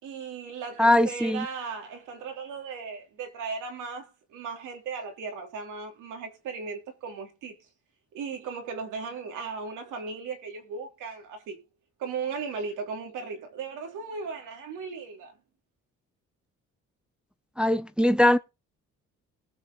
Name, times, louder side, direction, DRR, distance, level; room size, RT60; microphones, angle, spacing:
voice 1, 0.0-7.5 8.1-11.6 12.0-15.3, right 5 dB, 90° right, 3.3 m, -37 dB
voice 2, 0.8-1.5 17.6-18.4, left 1 dB, 5° right, 0.7 m, -21 dB
19.0 x 6.5 x 3.9 m
cardioid pair, 90°, 30 cm